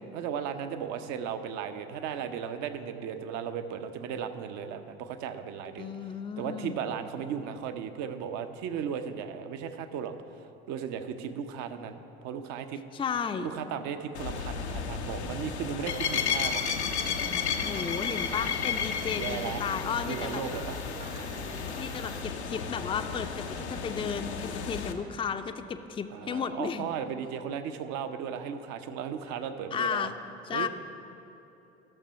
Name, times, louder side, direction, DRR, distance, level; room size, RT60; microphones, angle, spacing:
voice 1, 0.1-5.9 6.4-10.1 10.7-12.8 13.4-16.7 19.2-19.6 20.1-20.8 26.1-30.1 30.5-30.7, right 7 dB, 60° right, 8 dB, 0.7 m, -36 dB
voice 2, 5.8-6.8 12.9-13.5 17.6-20.4 21.8-26.9 29.7-30.2 30.4-30.7, left 6 dB, 15° left, 7 dB, 0.4 m, -34 dB
sound 1, 14.1-24.9, left 6 dB, 85° left, 0.7 m, -33 dB
sound 2, 15.9-22.2, right 3 dB, 85° right, 1.4 m, -49 dB
12.5 x 6.7 x 5.7 m, 3.0 s
figure-of-eight pair, 55°, 33 cm